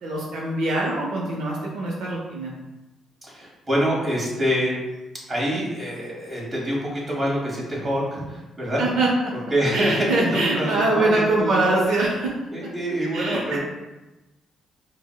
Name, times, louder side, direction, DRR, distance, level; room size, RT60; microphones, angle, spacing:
voice 1, 0.0-2.5 8.8-9.3 9.7-12.3 13.1-13.6, right 2 dB, 80° right, -3 dB, 0.6 m, -23 dB
voice 2, 3.2-4.7 5.3-8.8 9.5-11.7 12.5-13.6, equal, 25° right, -5 dB, 1.4 m, -26 dB
4.7 x 2.0 x 2.2 m, 1.1 s
cardioid pair, 90°, 0 cm